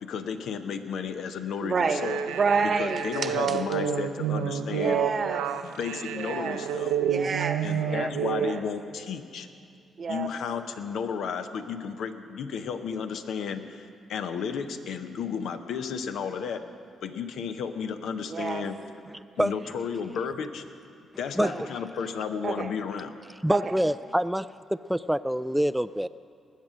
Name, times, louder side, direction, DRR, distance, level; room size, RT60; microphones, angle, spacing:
voice 1, 0.0-2.2 2.6-5.0 5.6-6.9 7.6-9.5 10.1-16.6 17.0-18.8 19.4-20.6 21.2-23.1, left 6 dB, 70° left, 8 dB, 0.8 m, -33 dB
voice 2, 1.6-3.6 4.7-5.5 6.1-6.6 7.1-8.1 8.4-8.6 10.0-10.3 18.3-18.6 21.4-21.7 22.4-22.7 23.5-23.7, right 5 dB, 50° right, 8 dB, 1.0 m, -29 dB
sound 1, 1.9-8.6, right 8 dB, 85° right, 0.5 m, -29 dB
voice 3, 23.4-24.4 24.9-26.1, equal, 5° right, 12 dB, 0.3 m, -25 dB
20.0 x 7.6 x 6.3 m, 2.5 s
hypercardioid pair, 50°, 0 cm